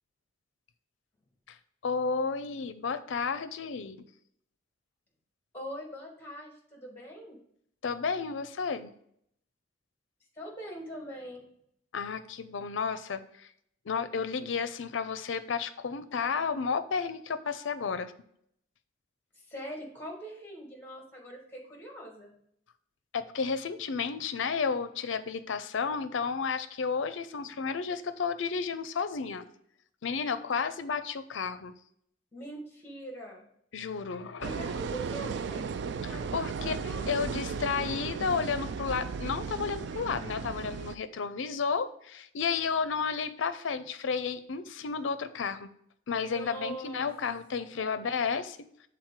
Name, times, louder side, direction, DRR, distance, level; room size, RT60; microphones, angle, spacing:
voice 1, 1.8-4.0 7.8-8.9 11.9-13.5 13.8-18.1 23.1-29.5 30.0-31.7 33.7-34.6 36.0-36.8 37.1-45.7 46.1-48.6, left 5 dB, 75° left, 12 dB, 0.5 m, -32 dB
voice 2, 5.5-7.4 10.3-11.4 19.3-22.3 32.3-33.4 34.4-35.6 36.1-37.3 46.2-47.1 47.7-48.1, right 1 dB, 10° left, 1 dB, 1.6 m, -43 dB
sound 1, 34.4-40.9, right 5 dB, 60° right, 0.3 m, -35 dB
6.5 x 3.9 x 4.6 m, 0.70 s
head